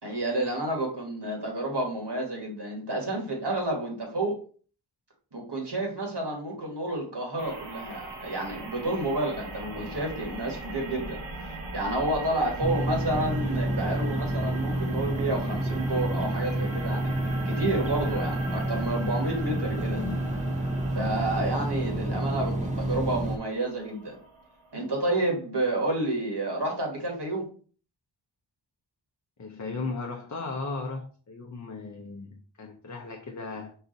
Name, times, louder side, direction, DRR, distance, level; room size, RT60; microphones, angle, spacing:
voice 1, 0.0-4.3 5.3-17.1 17.4-20.0 20.9-24.1 24.7-27.4, right 1 dB, 60° right, -1 dB, 1.7 m, -30 dB
sound 1, 7.4-24.9, right 2 dB, 75° right, 1.1 m, -41 dB
voice 2, 9.6-10.1 19.7-20.3 29.4-33.8, left 3 dB, 40° left, 2 dB, 0.6 m, -37 dB
sound 2, 12.6-23.4, right 1 dB, 15° right, 0.6 m, -29 dB
4.8 x 2.6 x 3.9 m, 0.42 s
wide cardioid pair, 55°, 47 cm